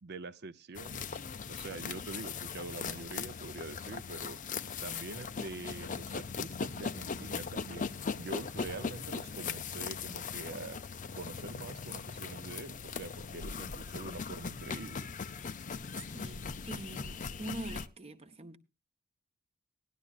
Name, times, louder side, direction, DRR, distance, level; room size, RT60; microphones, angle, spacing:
voice 1, 0.0-1.2 1.5-4.4 4.8-7.9 8.2-10.8 11.1-15.1, right 3 dB, 50° right, 0.6 m, -44 dB
sound 1, 0.7-17.9, left 5 dB, 35° left, 0.5 m, -39 dB
voice 2, 16.0-18.6, right 1 dB, 30° right, 0.9 m, -44 dB
18.0 x 11.0 x 2.3 m
head